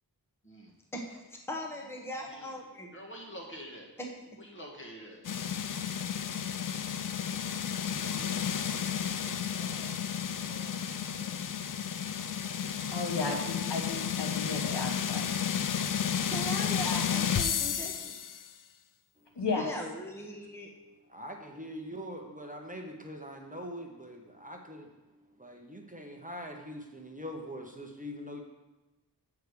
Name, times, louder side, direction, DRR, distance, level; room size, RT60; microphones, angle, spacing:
voice 1, 0.9-2.9 4.0-4.1 16.0-18.1 19.6-20.7, equal, 5° left, 0 dB, 1.0 m, -40 dB
voice 2, 2.9-3.9 4.4-5.2 7.9-11.3, equal, 30° left, -1 dB, 1.8 m, -49 dB
sound 1, 5.2-18.5, left 8 dB, 50° left, 0.5 m, -32 dB
voice 3, 12.9-15.2 19.3-19.7, left 3 dB, 75° left, 1 dB, 1.4 m, -34 dB
voice 4, 21.1-28.4, equal, 20° right, 1 dB, 0.8 m, -43 dB
8.3 x 4.7 x 6.7 m, 1.1 s
wide cardioid pair, 95°, 42 cm